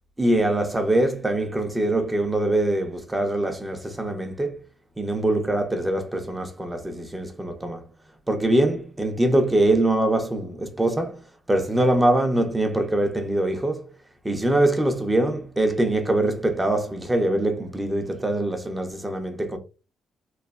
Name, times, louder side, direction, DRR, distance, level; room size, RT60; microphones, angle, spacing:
voice 1, 0.2-4.6 5.0-7.9 8.3-11.2 11.5-13.9 14.2-19.6, right 1 dB, 15° right, 0.6 m, -23 dB
3.1 x 2.2 x 2.4 m
cardioid pair, 90°, 0 cm